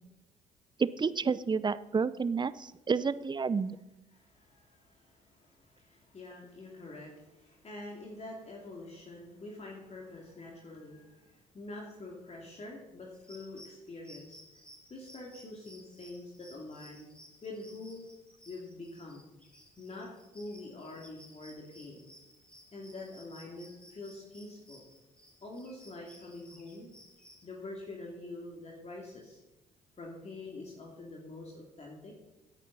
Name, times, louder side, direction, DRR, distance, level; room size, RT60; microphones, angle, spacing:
voice 1, 0.8-3.8, right 5 dB, 25° right, 17 dB, 0.6 m, -30 dB
voice 2, 4.1-14.4 14.9-17.1 17.4-18.0 18.4-19.3 19.8-22.0 22.7-24.8 25.4-26.9 27.4-29.4 30.0-32.1, left 2 dB, 35° left, -1 dB, 2.9 m, -46 dB
sound 1, 13.1-27.4, equal, 5° left, 4.4 m, -57 dB
16.5 x 10.5 x 4.2 m, 1.0 s
figure-of-eight pair, 50°, 19 cm